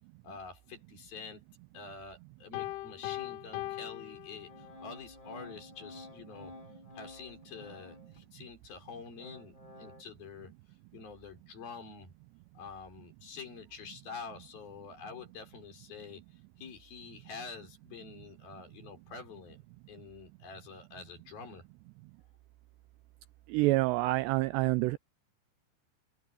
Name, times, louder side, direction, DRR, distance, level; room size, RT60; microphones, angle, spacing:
voice 1, 0.2-1.4 1.7-6.6 6.9-10.5 10.9-12.1 12.6-16.2 16.6-19.6 19.9-21.7, left 5 dB, 50° left, 7.5 m, -47 dB
Piano, 2.5-4.9, left 17 dB, 85° left, 3.3 m, -40 dB
Organ, 4.5-8.3 8.7-10.0, left 2 dB, 10° left, 2.7 m, -51 dB
voice 2, 23.5-25.0, right 20 dB, 85° right, 2.4 m, -27 dB
omnidirectional pair, 5.5 m